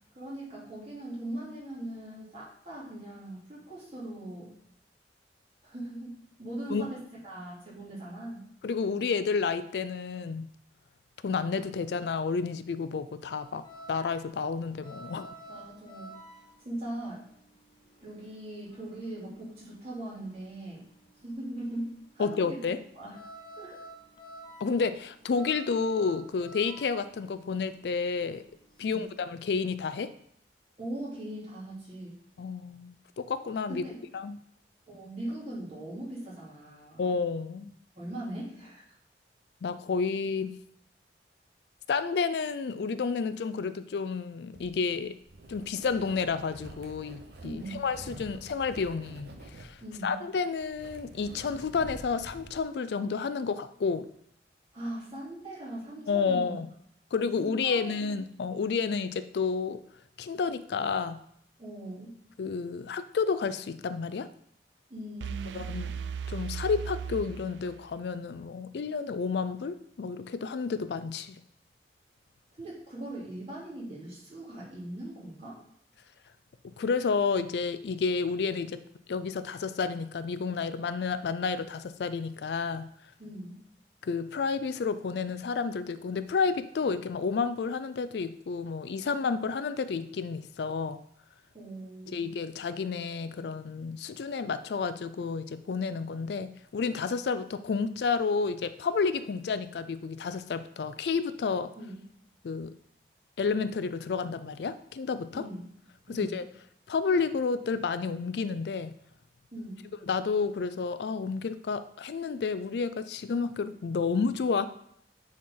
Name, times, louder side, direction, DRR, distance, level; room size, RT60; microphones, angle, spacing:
voice 1, 0.1-4.5 5.6-8.5 15.5-16.2 16.6-17.3 18.0-20.8 21.2-22.7 22.9-23.2 23.6-23.7 28.8-29.1 30.8-32.2 33.7-34.0 34.9-37.0 38.0-38.8 47.4-47.8 49.8-50.2 54.7-56.5 57.4-58.1 61.6-62.2 64.9-65.6 72.6-75.6 83.2-83.6 91.5-92.2 101.8-102.0 105.3-105.7 106.1-106.4 109.5-109.9, right 1 dB, 35° right, -6 dB, 2.9 m, -40 dB
voice 2, 8.6-10.5 11.2-15.3 22.2-22.8 24.6-28.4 28.8-30.1 32.4-33.9 34.1-34.4 37.0-37.7 39.6-40.6 41.9-45.2 45.5-54.1 56.1-56.7 57.1-59.8 60.2-61.2 62.4-64.3 65.5-65.9 66.3-71.4 76.8-78.8 79.1-82.9 84.0-91.0 92.1-101.7 102.4-102.8 103.4-105.4 106.1-106.5 106.9-108.9 110.1-114.6, left 5 dB, 70° left, 13 dB, 0.4 m, -30 dB
sound 1, 13.4-20.5 20.8-29.2, right 1 dB, 30° left, 1.3 m, -50 dB
sound 2, 44.5-52.6, right 1 dB, 65° right, 0.8 m, -48 dB
sound 3, 65.2-68.1, right 7 dB, 90° right, 0.3 m, -37 dB
9.3 x 4.3 x 3.8 m, 0.69 s
head